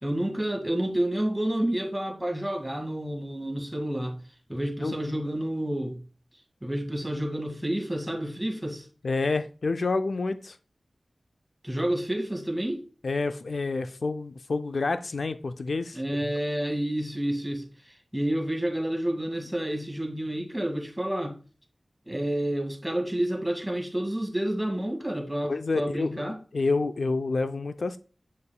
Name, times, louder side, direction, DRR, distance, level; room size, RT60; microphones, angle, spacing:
voice 1, 0.0-4.2 4.5-6.0 6.6-8.9 11.6-12.8 15.9-21.4 22.1-26.4, right 1 dB, 5° right, 1.8 m, -29 dB
voice 2, 9.0-10.6 13.0-16.0 25.5-26.2 26.5-28.0, left 3 dB, 75° left, 0.4 m, -28 dB
7.3 x 6.5 x 2.2 m
wide cardioid pair, 55°, 0 cm